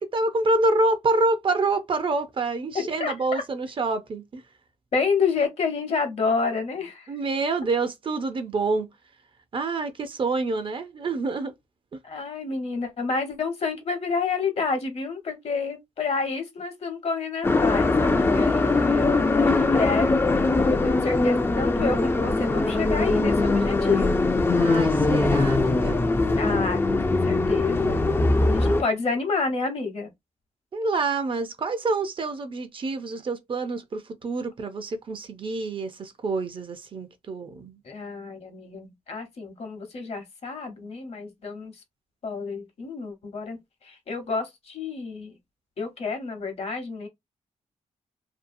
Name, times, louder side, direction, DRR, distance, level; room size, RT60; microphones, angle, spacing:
voice 1, 0.0-4.4 7.1-8.9 9.5-11.5 11.9-12.0 24.6-26.1 26.5-26.6 30.7-37.8, right 3 dB, 45° right, 0.5 m, -27 dB
voice 2, 2.7-3.4 4.9-7.1 12.0-20.2 20.7-24.1 26.4-28.0 28.4-30.1 37.8-41.7 42.2-45.4 45.8-47.1, left 4 dB, 55° left, 0.9 m, -29 dB
sound 1, 17.4-28.8, left 3 dB, 20° left, 0.3 m, -21 dB
2.7 x 2.3 x 2.6 m
wide cardioid pair, 120°, 12 cm